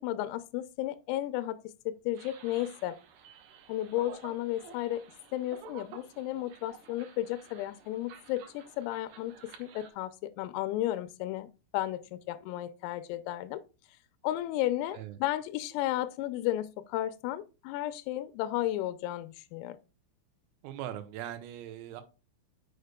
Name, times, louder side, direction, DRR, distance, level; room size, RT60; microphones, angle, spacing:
voice 1, 0.0-1.6 1.9-3.0 3.7-5.0 5.3-9.3 9.6-13.6 14.2-19.8, left 14 dB, 85° left, 3.3 m, -33 dB
sound 1, 2.1-9.9, right 6 dB, 70° right, 2.7 m, -52 dB
voice 2, 20.6-22.0, right 11 dB, 85° right, 3.6 m, -40 dB
6.6 x 6.5 x 2.2 m
omnidirectional pair, 6.0 m